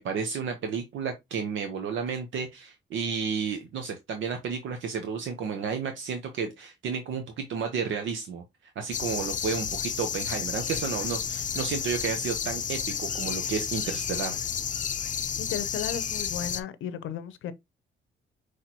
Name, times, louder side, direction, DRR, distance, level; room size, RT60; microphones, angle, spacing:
voice 1, 0.0-14.4, right 6 dB, 75° right, 0.9 m, -32 dB
sound 1, 8.9-16.6, left 8 dB, 40° left, 0.5 m, -31 dB
voice 2, 15.4-17.5, left 8 dB, 80° left, 0.7 m, -35 dB
5.7 x 3.2 x 2.8 m
cardioid pair, 90°, 20 cm